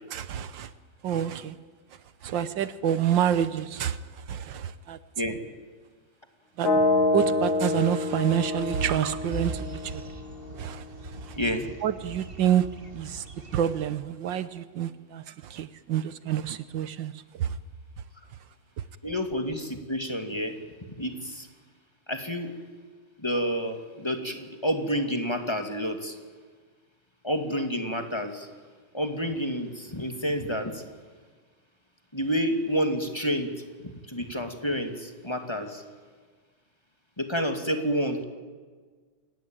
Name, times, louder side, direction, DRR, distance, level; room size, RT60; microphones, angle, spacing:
voice 1, 0.1-0.7 1.0-1.6 2.2-5.0 6.6-6.7 7.1-10.0 10.6-11.4 11.8-12.7 12.9-13.3 13.5-17.6 18.8-18.9, right 10 dB, 75° right, 14 dB, 1.7 m, -28 dB
sound 1, 6.6-10.6, left 2 dB, 80° left, 2.9 m, -27 dB
sound 2, 8.5-13.8, right 2 dB, 30° right, 1.9 m, -41 dB
voice 2, 11.4-11.7 19.0-20.6 20.9-21.5 22.1-22.5 23.2-26.2 27.2-28.5 28.9-30.8 32.1-33.5 34.1-35.8 37.2-38.2, equal, 15° left, 6 dB, 2.4 m, -29 dB
27.5 x 20.0 x 9.1 m, 1.5 s
omnidirectional pair, 2.0 m